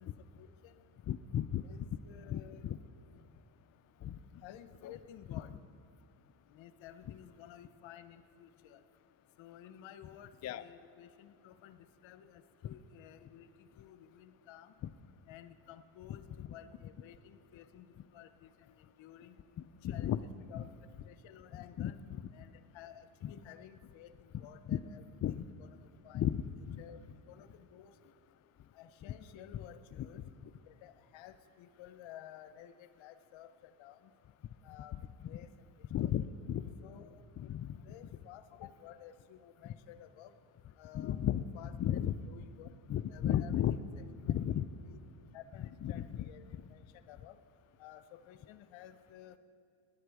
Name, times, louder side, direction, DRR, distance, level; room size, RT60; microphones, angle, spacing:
voice 1, 0.0-1.0 1.6-2.8 4.4-5.6 6.5-8.8 9.4-14.7 15.3-19.4 19.8-20.2 20.5-20.7 21.0-22.0 22.3-25.0 25.6-26.2 26.8-27.0 27.3-28.0 28.7-30.2 30.7-34.1 34.6-36.1 36.8-40.3 40.8-42.0 42.3-42.7 43.1-44.0 44.8-45.0 45.3-47.4 47.8-49.4, left 10 dB, 70° left, 12 dB, 0.9 m, -54 dB
voice 2, 1.1-1.6 1.9-2.0 2.3-2.8 4.0-4.2 10.4-10.6 19.8-20.2 20.5-20.6 21.8-22.3 23.2-23.3 24.7-24.8 25.2-25.4 26.1-26.4 26.7-26.8 34.9-35.0 35.9-36.6 37.4-37.8 39.7-39.8 40.9-41.4 41.8-42.2 42.9-43.8 44.3-44.6 45.8-46.2, left 11 dB, 35° left, 12 dB, 0.4 m, -34 dB
18.5 x 11.0 x 4.8 m, 2.3 s
cardioid pair, 95°, 48 cm